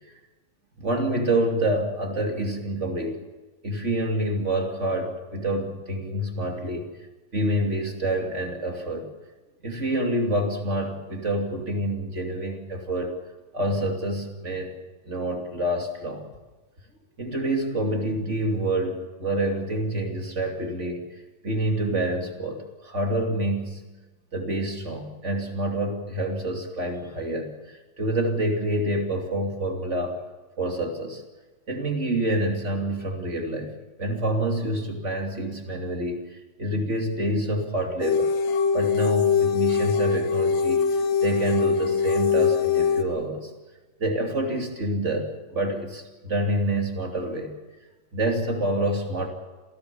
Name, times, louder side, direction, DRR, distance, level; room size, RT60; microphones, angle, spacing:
voice 1, 0.8-3.2 3.6-6.9 7.3-9.1 9.6-13.2 13.5-14.7 15.0-16.3 17.2-21.1 21.4-23.8 24.3-30.2 30.6-31.2 31.7-38.3 38.7-43.5 44.0-47.5 48.1-49.3, right 1 dB, 20° right, 2 dB, 2.6 m, -27 dB
sound 1, 38.0-43.0, left 6 dB, 75° left, 2.9 m, -22 dB
27.0 x 17.5 x 7.1 m, 1.2 s
omnidirectional pair, 4.2 m